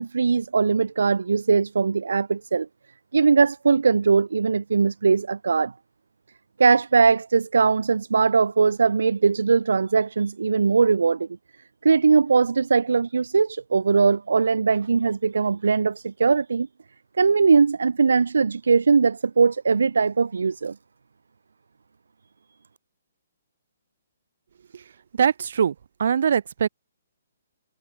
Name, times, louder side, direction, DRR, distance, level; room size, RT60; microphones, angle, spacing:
voice 1, 0.0-2.7 3.1-5.7 6.6-11.3 11.8-16.7 17.2-20.7, right 5 dB, 85° right, 0.4 m, -20 dB
voice 2, 25.1-26.7, right 7 dB, 65° right, 1.2 m, -22 dB
hypercardioid pair, 150°, 0 cm